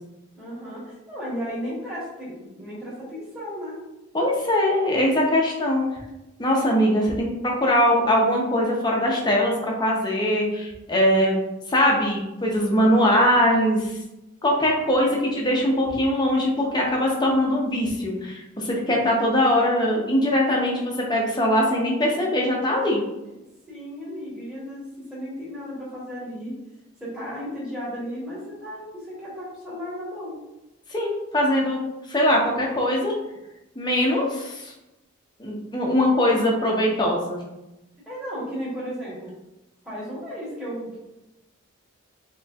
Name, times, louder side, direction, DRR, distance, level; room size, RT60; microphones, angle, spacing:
voice 1, 0.3-3.8 14.8-15.1 23.7-26.5 27.0-30.4 38.0-39.3 39.8-41.0, equal, 5° right, -9 dB, 1.2 m, -34 dB
voice 2, 4.1-5.8 6.4-11.4 11.7-14.0 14.4-23.0 30.9-31.8 32.1-33.1 33.8-34.7 35.4-37.4, left 1 dB, 20° left, -2 dB, 0.7 m, -21 dB
4.1 x 3.0 x 2.3 m, 0.96 s
head